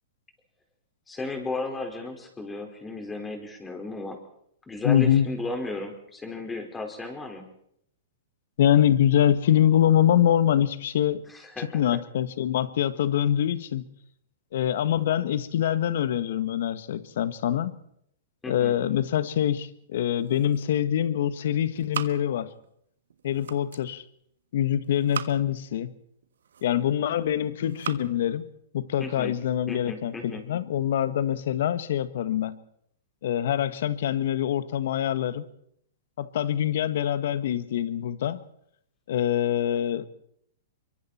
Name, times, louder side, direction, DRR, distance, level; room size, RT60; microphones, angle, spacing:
voice 1, 1.1-4.2 4.7-7.4 11.3-11.8 18.4-18.7 29.0-29.3 29.7-30.4, left 2 dB, 10° left, 3 dB, 4.8 m, -35 dB
voice 2, 4.8-5.3 8.6-11.2 11.6-13.8 14.5-17.8 18.5-22.5 23.2-24.0 24.5-25.9 26.6-28.5 28.7-32.6 33.2-35.4 36.2-38.4 39.1-40.1, left 10 dB, 65° left, 14 dB, 1.5 m, -24 dB
sound 1, 20.0-21.0 21.3-22.7 23.1-23.9 24.8-25.7 26.2-27.0 27.5-28.1, right 8 dB, 80° right, 1.3 m, -39 dB
25.5 x 23.5 x 4.4 m, 0.70 s
hypercardioid pair, 130°, 0 cm